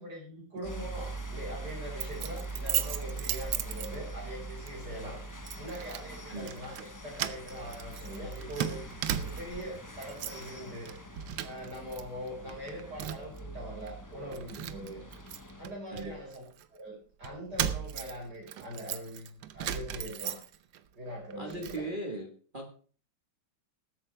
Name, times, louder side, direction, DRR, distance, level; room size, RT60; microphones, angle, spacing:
voice 1, 0.0-5.2 5.6-10.9 11.4-15.0 15.6-16.4 16.7-16.9 17.2-20.4 20.9-21.9, equal, 55° right, -2 dB, 5.7 m, -42 dB
voice 2, 0.5-0.8 6.3-6.5 15.9-16.2 21.4-22.3 22.5-22.7, right 2 dB, 30° right, 2 dB, 1.5 m, -38 dB
sound 1, 0.6-15.7, right 2 dB, 15° left, 0.7 m, -43 dB
Keys jangling, 2.0-4.3 4.7-4.9 5.5-6.1 6.4-6.9 7.1-9.6 10.0-10.5 10.8-12.0 12.3-13.4 13.9-14.0 14.3-16.7 17.2-20.8 21.2-21.8, right 11 dB, 75° right, 1.5 m, -37 dB
20.0 x 8.4 x 3.3 m, 0.41 s
omnidirectional pair, 2.1 m